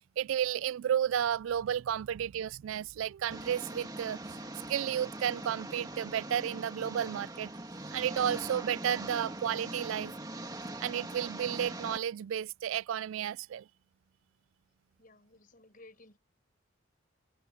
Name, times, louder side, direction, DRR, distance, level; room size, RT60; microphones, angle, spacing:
voice 1, 0.2-4.2 4.7-7.5 7.9-10.1 10.8-13.7, right 9 dB, 75° right, 0.3 m, -32 dB
Engine, 3.3-12.0, right 1 dB, 20° right, 1.9 m, -42 dB
voice 2, 15.0-16.2, left 2 dB, 40° left, 5.1 m, -56 dB
open air
head